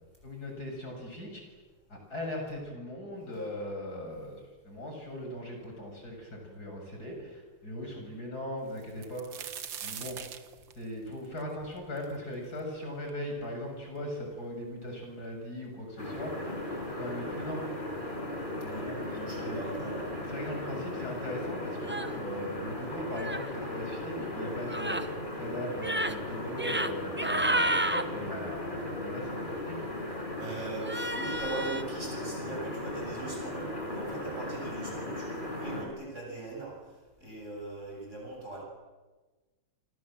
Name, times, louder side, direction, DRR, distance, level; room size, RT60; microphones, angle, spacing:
voice 1, 0.2-1.4 1.9-9.5 9.8-10.2 10.7-16.6 16.9-17.6 18.6-19.0 19.4-19.6 20.3-29.8, left 1 dB, 45° left, 1 dB, 7.4 m, -39 dB
sound 1, 8.8-12.6 13.1-13.2 14.0-14.1 14.3-15.0 15.9-16.0 16.4-16.6, right 8 dB, 60° right, 2.0 m, -42 dB
sound 2, 16.0-35.8, left 1 dB, 20° left, 5.9 m, -37 dB
voice 2, 18.7-20.1 30.4-36.8 37.2-38.6, right 2 dB, 30° right, -1 dB, 8.2 m, -40 dB
sound 3, 21.9-22.1 23.2-23.5 24.7-25.0 25.7-26.1 26.5-26.9 27.2-28.0 30.8-31.8, right 1 dB, 10° right, 0.5 m, -30 dB
29.0 x 26.5 x 7.7 m, 1.3 s
omnidirectional pair, 2.4 m